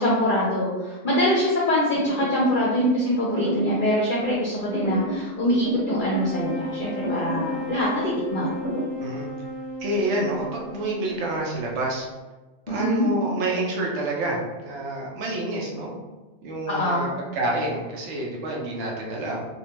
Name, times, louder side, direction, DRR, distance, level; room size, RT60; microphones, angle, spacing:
voice 1, 0.0-8.6 12.7-13.1 16.7-17.2, left 1 dB, 55° left, -5 dB, 0.6 m, -24 dB
sound 1, 2.0-2.9 3.3-3.9 4.7-5.3 5.6-6.7 7.0-7.6 8.4-8.9, equal, 40° right, 0.8 m, -29 dB
sound 2, 6.0-11.4, right 1 dB, 5° left, 0.6 m, -35 dB
voice 2, 9.8-12.1 12.7-15.9 16.4-19.4, right 1 dB, 75° right, -2 dB, 1.0 m, -28 dB
2.5 x 2.2 x 2.9 m, 1.2 s
omnidirectional pair, 1.3 m